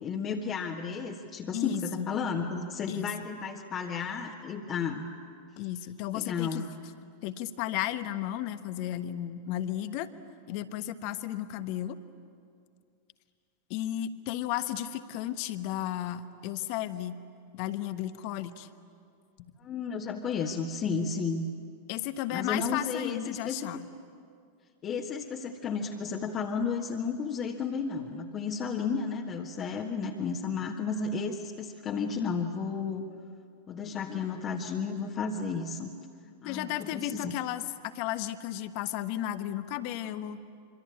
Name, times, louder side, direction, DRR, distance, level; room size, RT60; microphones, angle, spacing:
voice 1, 0.0-5.0 6.1-6.7 19.6-21.4 22.3-23.7 24.8-33.1 33.7-35.9 36.4-37.3, left 5 dB, 30° left, 0 dB, 1.6 m, -33 dB
voice 2, 1.5-2.1 2.9-3.1 5.6-6.6 7.2-10.1 10.5-12.0 13.7-17.2 17.5-18.7 21.9-23.9 36.4-40.4, left 12 dB, 45° left, 11 dB, 1.2 m, -34 dB
26.0 x 25.0 x 8.8 m, 2.3 s
figure-of-eight pair, 90°, 0 cm